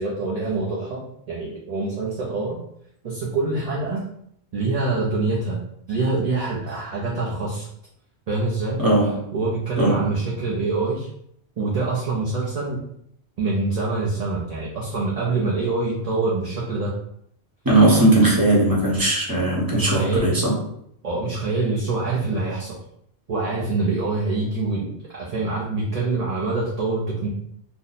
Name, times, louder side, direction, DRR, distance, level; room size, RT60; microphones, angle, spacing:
voice 1, 0.0-2.6 3.0-4.0 4.5-5.6 5.9-7.7 8.3-8.8 9.3-11.1 11.6-12.8 13.4-16.9 19.7-20.4 21.0-22.8 23.3-27.3, right 3 dB, 45° right, -5 dB, 0.6 m, -25 dB
voice 2, 8.8-9.2 9.8-10.1 17.6-20.5, right 1 dB, 20° right, -4 dB, 0.9 m, -18 dB
2.7 x 2.1 x 3.9 m, 0.71 s
omnidirectional pair, 1.1 m